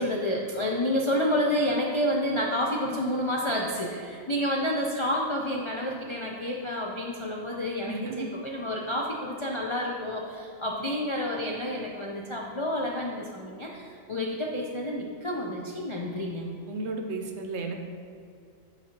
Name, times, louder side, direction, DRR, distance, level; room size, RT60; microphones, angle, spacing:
voice 1, 0.0-16.5, left 1 dB, 50° left, -2 dB, 0.3 m, -29 dB
voice 2, 7.9-8.3 16.7-17.7, right 3 dB, 65° right, 4 dB, 0.8 m, -33 dB
8.9 x 4.7 x 2.9 m, 2.4 s
omnidirectional pair, 1.4 m